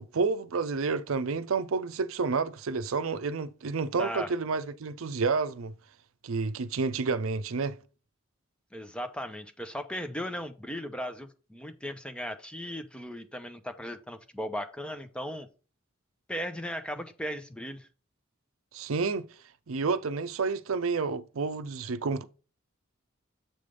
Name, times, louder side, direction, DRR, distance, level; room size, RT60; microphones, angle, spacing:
voice 1, 0.0-5.7 6.2-7.8 18.7-19.3 19.7-22.2, right 4 dB, 80° right, 0.5 m, -30 dB
voice 2, 4.0-4.3 8.7-15.5 16.3-17.9, equal, 5° left, 0.6 m, -37 dB
7.7 x 3.3 x 5.2 m
head